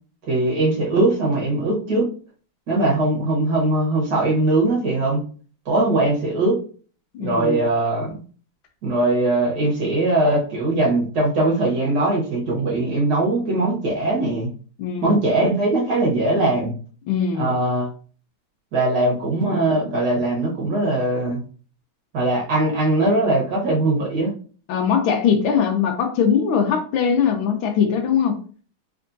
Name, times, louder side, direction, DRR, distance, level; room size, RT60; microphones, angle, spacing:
voice 1, 0.3-2.1 2.7-5.2 5.7-6.6 7.2-8.2 8.8-14.5 15.0-16.7 17.4-17.9 18.7-21.4 22.1-24.3, right 2 dB, 55° right, -4 dB, 1.5 m, -20 dB
voice 2, 7.1-7.6 14.8-15.2 17.1-17.5 24.7-28.4, left 7 dB, 75° left, 4 dB, 1.3 m, -21 dB
3.7 x 3.4 x 2.6 m, 0.41 s
omnidirectional pair, 2.3 m